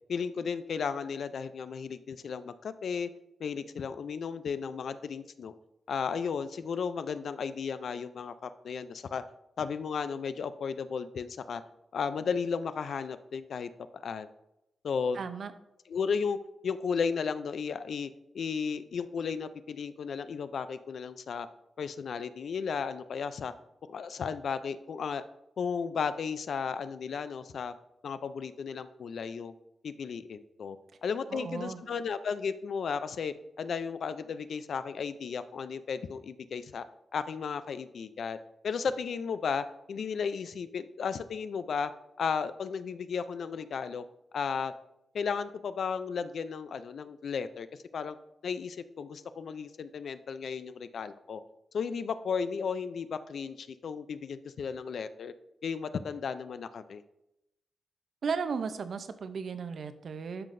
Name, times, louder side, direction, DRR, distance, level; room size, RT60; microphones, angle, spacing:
voice 1, 0.1-3.1 3.4-5.5 5.9-9.2 9.6-11.6 11.9-14.3 14.8-15.2 15.9-16.4 16.6-21.5 21.8-23.5 23.9-25.2 25.6-27.7 28.0-29.5 29.8-30.8 31.0-36.9 37.1-38.4 38.6-41.9 42.2-44.0 44.3-44.7 45.1-47.7 47.9-48.2 48.4-51.4 51.7-55.3 55.6-57.0, left 6 dB, 65° left, 12 dB, 0.4 m, -34 dB
voice 2, 15.1-15.5 31.3-31.9 58.2-60.5, right 5 dB, 60° right, 10 dB, 0.6 m, -35 dB
12.0 x 5.8 x 2.6 m, 0.86 s
wide cardioid pair, 140°, 0 cm